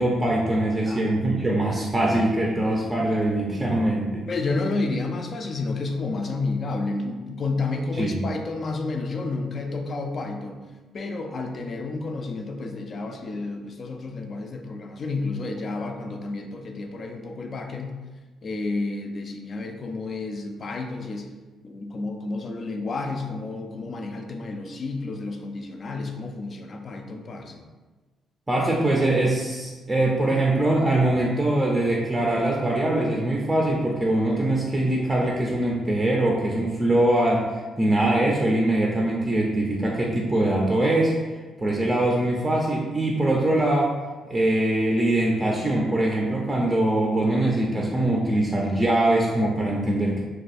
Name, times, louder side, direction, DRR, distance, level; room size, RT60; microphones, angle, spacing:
voice 1, 0.0-4.3 8.0-8.2 28.5-37.5 37.8-41.1 41.6-43.9 44.3-50.2, right 1 dB, 15° right, -2 dB, 0.5 m, -22 dB
voice 2, 4.3-10.6 10.9-18.0 18.4-21.3 21.6-27.6 41.6-41.7, left 3 dB, 45° left, 4 dB, 0.4 m, -30 dB
2.7 x 2.3 x 4.0 m, 1.3 s
cardioid pair, 90°, 0 cm